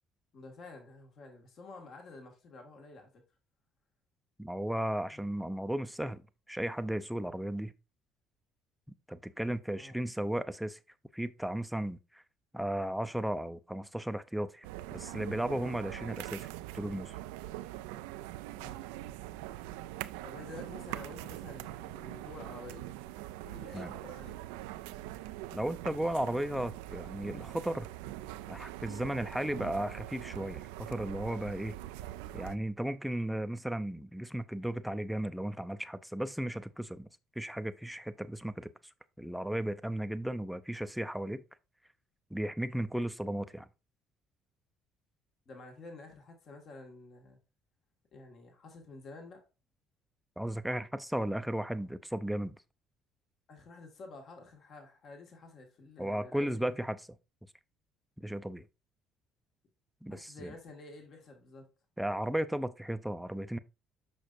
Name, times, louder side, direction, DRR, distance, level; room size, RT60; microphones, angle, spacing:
voice 1, 0.3-3.1 5.1-5.3 9.7-10.0 18.6-18.8 20.2-22.9 23.4-24.3 42.7-42.9 45.5-47.4 48.1-49.4 53.5-56.8 60.1-61.7, left 3 dB, 55° left, 1.9 m, -50 dB
voice 2, 4.4-6.2 6.5-7.7 9.1-10.8 11.1-12.2 12.5-14.7 14.9-16.5 16.7-17.1 23.7-23.9 25.5-27.9 28.5-31.8 32.3-37.1 37.4-38.7 39.2-41.4 42.3-43.7 50.4-52.6 56.0-57.0 58.2-58.7 60.0-60.5 62.0-63.6, right 1 dB, 5° right, 0.5 m, -35 dB
sound 1, 14.6-32.6, right 15 dB, 85° right, 0.3 m, -43 dB
6.5 x 5.6 x 2.6 m
supercardioid pair, 70°, 0 cm